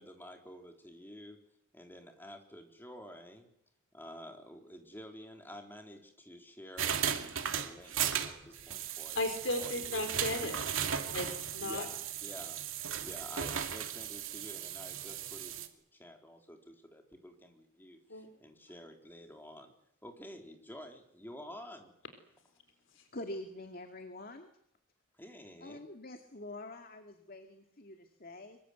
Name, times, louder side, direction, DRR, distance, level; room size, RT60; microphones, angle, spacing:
voice 1, 0.0-1.4 1.7-3.5 3.9-7.9 8.2-9.2 9.6-9.9 11.6-19.7 20.0-21.9 25.2-25.8, equal, 10° left, 4 dB, 3.8 m, -50 dB
sound 1, 6.8-15.7, right 8 dB, 70° right, 2.5 m, -36 dB
voice 2, 9.2-10.6 11.1-11.3 11.5-11.9 18.1-18.3, left 2 dB, 60° left, 7 dB, 4.0 m, -34 dB
voice 3, 23.1-24.5 25.6-28.6, left 1 dB, 45° left, 6 dB, 2.2 m, -45 dB
25.0 x 23.0 x 8.2 m, 0.73 s
head